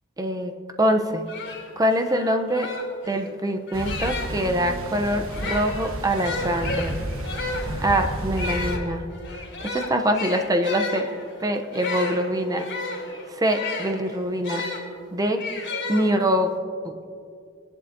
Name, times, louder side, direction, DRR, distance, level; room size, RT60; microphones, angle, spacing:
voice 1, 0.2-0.5 0.8-1.2 1.8-2.7 3.1-7.0 7.8-9.0 9.6-11.1 11.4-12.7 13.3-14.6 15.1-15.4 15.9-16.5 16.8-16.9, equal, 15° right, 5 dB, 0.6 m, -24 dB
sound 1, 0.9-1.0 1.3-4.5 5.2-14.8 15.4-16.5, left 3 dB, 55° left, 3.2 m, -33 dB
sound 2, 3.7-8.8, right 1 dB, 75° right, 1.2 m, -32 dB
19.5 x 11.0 x 2.7 m, 2.4 s
head